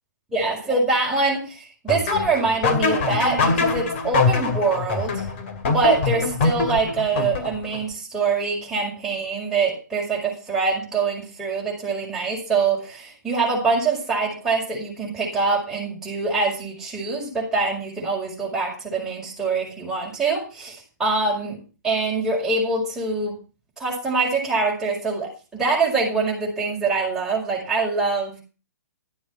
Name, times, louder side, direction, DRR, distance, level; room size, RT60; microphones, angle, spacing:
voice 1, 0.3-5.3 5.7-21.6 21.8-23.4 23.8-28.4, right 3 dB, 5° right, -6 dB, 5.2 m, -24 dB
sound 1, 1.9-7.8, left 4 dB, 40° left, 2.4 m, -23 dB
12.0 x 7.7 x 6.1 m, 0.34 s
figure-of-eight pair, 125°, 10 cm